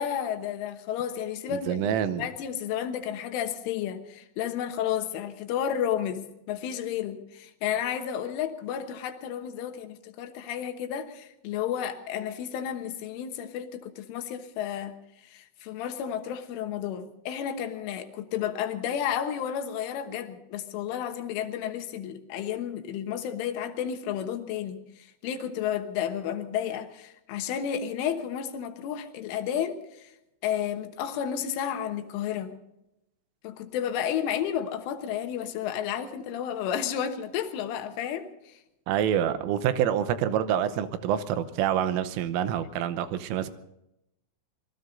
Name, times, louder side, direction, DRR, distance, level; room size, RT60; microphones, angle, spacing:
voice 1, 0.0-14.9 15.2-30.1 30.4-32.6 33.4-38.5, left 9 dB, 75° left, 7 dB, 3.6 m, -32 dB
voice 2, 1.5-2.2 38.9-43.5, right 10 dB, 85° right, 12 dB, 3.4 m, -27 dB
26.0 x 20.5 x 2.7 m, 0.87 s
omnidirectional pair, 5.8 m